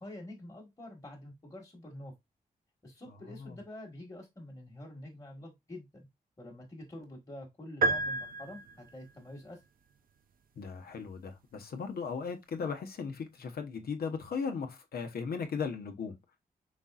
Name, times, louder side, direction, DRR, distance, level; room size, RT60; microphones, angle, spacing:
voice 1, 0.0-2.1 2.8-6.1 6.4-9.6, left 1 dB, 20° left, 1.5 m, -47 dB
sound 1, 7.8-9.1, right 3 dB, 65° right, 0.6 m, -31 dB
voice 2, 10.6-16.2, left 5 dB, 80° left, 1.0 m, -37 dB
5.3 x 4.1 x 2.4 m
wide cardioid pair, 155°, 16 cm